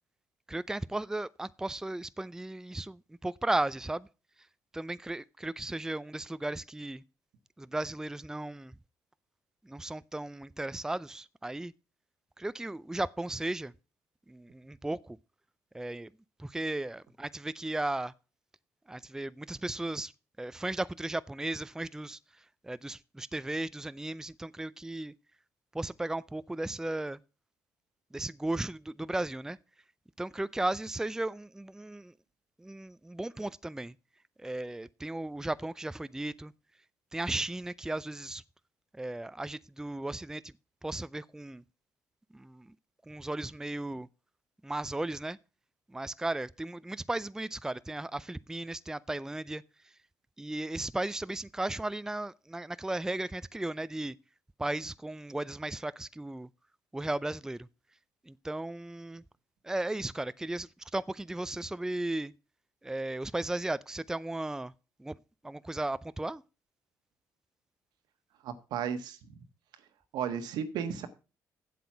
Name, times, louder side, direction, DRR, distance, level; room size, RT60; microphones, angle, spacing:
voice 1, 0.5-4.1 4.7-7.0 7.6-8.7 9.7-11.7 12.4-13.7 14.3-15.2 15.7-16.1 16.4-18.1 18.9-20.1 20.4-22.2 22.6-25.1 25.7-27.2 28.1-29.6 30.2-32.1 32.6-33.9 34.4-36.5 37.1-38.4 38.9-40.5 40.8-41.6 42.3-42.7 43.1-44.1 44.6-45.4 45.9-49.6 50.4-54.1 54.6-56.5 56.9-57.7 58.3-59.2 59.6-62.3 62.8-64.7 65.0-65.2 65.4-66.4, right 2 dB, 10° right, 0.4 m, -35 dB
voice 2, 68.4-69.4 70.1-71.1, right 8 dB, 80° right, 1.4 m, -34 dB
8.4 x 7.9 x 5.8 m
supercardioid pair, 65°, 7 cm